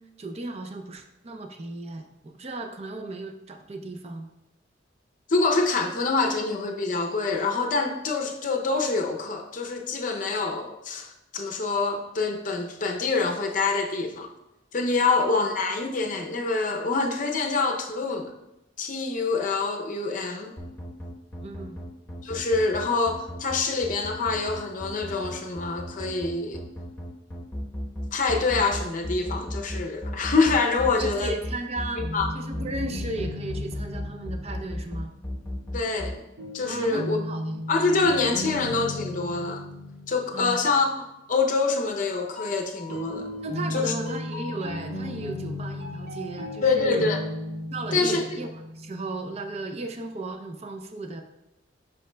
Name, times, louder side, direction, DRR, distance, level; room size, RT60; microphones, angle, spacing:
voice 1, 0.0-4.3 21.4-21.9 30.8-32.0 32.3-35.1 36.6-37.6 40.3-40.7 43.4-47.1 47.7-51.2, right 2 dB, 35° right, 5 dB, 0.5 m, -35 dB
voice 2, 5.3-14.3 14.7-18.3 18.8-20.5 22.2-26.6 28.1-31.3 31.9-32.3 35.7-36.2 36.5-37.2 37.7-39.6 40.1-40.9 41.3-43.3 43.7-43.9 46.6-47.2 47.9-48.2, left 3 dB, 45° left, 3 dB, 0.6 m, -25 dB
sound 1, 20.6-36.1, equal, 10° left, 1.0 m, -34 dB
sound 2, 32.0-35.1 36.4-41.0 41.8-49.5, left 1 dB, 65° right, 1.9 m, -36 dB
8.1 x 5.7 x 2.2 m, 0.92 s
head